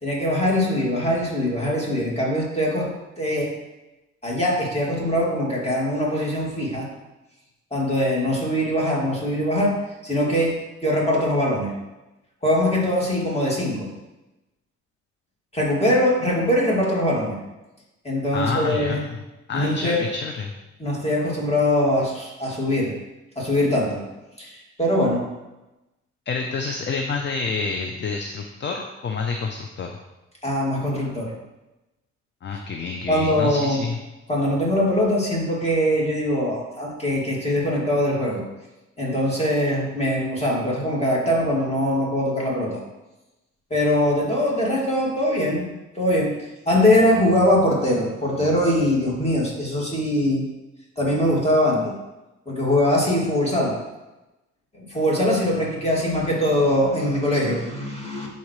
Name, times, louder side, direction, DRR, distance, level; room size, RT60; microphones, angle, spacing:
voice 1, 0.0-2.9 3.2-3.6 4.2-6.9 7.7-11.8 12.4-13.9 15.5-17.4 18.0-19.0 19.5-20.0 20.8-23.0 23.4-24.1 24.4-25.3 30.4-31.3 33.1-33.8 34.3-38.4 39.0-42.8 43.7-45.7 45.9-50.5 51.0-51.9 52.5-53.8 54.7-58.3, left 1 dB, 20° left, -4 dB, 2.5 m, -22 dB
voice 2, 18.3-19.2 19.5-20.5 26.3-30.0 32.4-34.0, left 4 dB, 40° left, 3 dB, 0.7 m, -28 dB
11.0 x 4.2 x 3.3 m, 1.0 s
cardioid pair, 90°, 30 cm